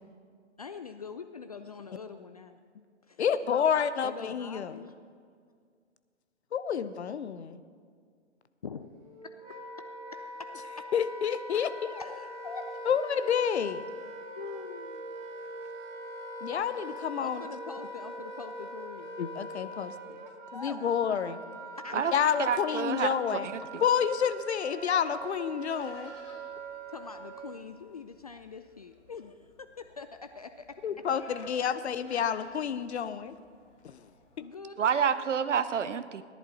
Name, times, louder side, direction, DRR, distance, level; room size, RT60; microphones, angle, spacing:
voice 1, 0.6-2.6 3.1-3.2 4.0-5.0 8.6-8.9 12.0-12.7 14.3-15.1 17.2-19.2 20.5-20.9 21.8-22.2 26.9-30.7 34.4-34.9, left 5 dB, 35° left, 8 dB, 0.4 m, -43 dB
voice 2, 3.2-4.7 6.5-7.6 10.6-12.0 12.8-13.8 16.4-17.4 19.2-19.9 20.5-21.4 21.9-23.5 23.8-26.1 30.8-33.3 33.8-34.0, left 8 dB, 60° left, 13 dB, 0.8 m, -29 dB
Wind instrument woodwind instrument, 8.9-27.7, right 1 dB, 35° right, 1.5 m, -42 dB
voice 3, 22.4-23.8 34.8-36.2, right 7 dB, 75° right, 12 dB, 0.8 m, -29 dB
Livestock farm animals working animals, 23.4-34.4, left 1 dB, 15° left, 2.6 m, -53 dB
17.5 x 11.0 x 4.1 m, 2.1 s
figure-of-eight pair, 135°, 37 cm